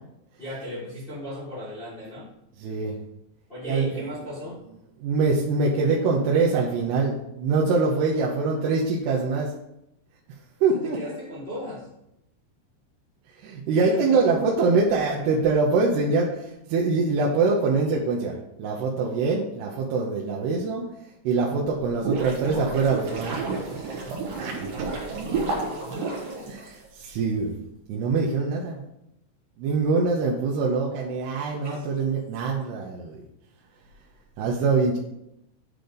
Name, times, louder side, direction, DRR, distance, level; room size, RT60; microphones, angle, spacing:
voice 1, 0.4-2.3 3.5-4.6 10.7-11.9 13.7-14.2 25.2-26.5 31.6-31.8, left 1 dB, 70° left, -6 dB, 0.5 m, -36 dB
voice 2, 2.6-3.0 3.7-3.9 5.0-9.5 10.6-11.0 13.4-20.9 21.2-23.4 23.8-24.1 24.4-24.9 26.5-27.6 27.9-28.8 29.6-33.3 34.4-35.0, right 4 dB, 85° right, -3 dB, 3.1 m, -24 dB
sound 1, 21.7-27.1, right 4 dB, 60° right, 3.5 m, -31 dB
9.7 x 3.9 x 6.9 m, 0.84 s
omnidirectional pair, 4.7 m